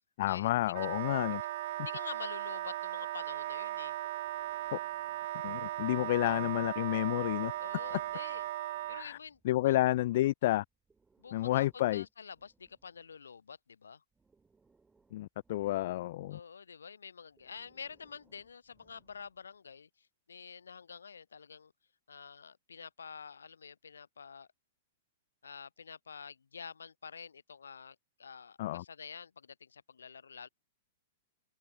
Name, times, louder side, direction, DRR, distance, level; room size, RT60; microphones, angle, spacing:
voice 1, 0.2-1.4 4.7-4.8 5.4-7.5 8.9-9.2 9.4-10.6 11.3-12.0 15.1-16.4 28.6-28.8, left 15 dB, 55° left, 0.4 m, -30 dB
Wind instrument woodwind instrument, 0.7-9.1, right 14 dB, 55° right, 0.5 m, -37 dB
voice 2, 1.8-4.0 7.6-8.5 8.9-9.8 11.2-14.0 16.3-21.7 22.1-24.5 25.4-30.5, left 6 dB, 75° left, 3.0 m, -48 dB
Breathing, 4.0-6.5 7.2-9.6 10.7-13.5 14.1-16.3 17.3-19.6, right 4 dB, 10° right, 6.0 m, -71 dB
open air
figure-of-eight pair, 105°, 0 cm